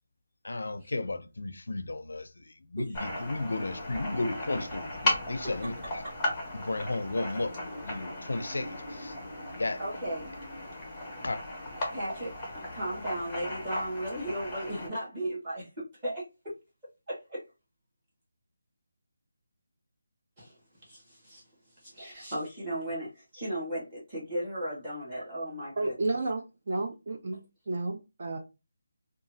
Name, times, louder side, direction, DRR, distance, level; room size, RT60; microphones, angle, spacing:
voice 1, 0.4-2.3 2.7-6.0 6.5-7.5 7.8-9.1 9.6-9.8 11.2-11.4, left 2 dB, 85° left, 0.4 m, -33 dB
sound 1, 2.9-14.9, left 2 dB, 10° left, 0.7 m, -36 dB
voice 2, 9.8-10.3 11.9-16.5 17.1-17.4 20.4-20.5 20.9-21.4 21.8-26.1, right 1 dB, 15° right, 1.2 m, -36 dB
voice 3, 25.8-27.4 27.7-28.4, right 2 dB, 40° right, 0.4 m, -32 dB
2.8 x 2.3 x 2.7 m
figure-of-eight pair, 175°, 0 cm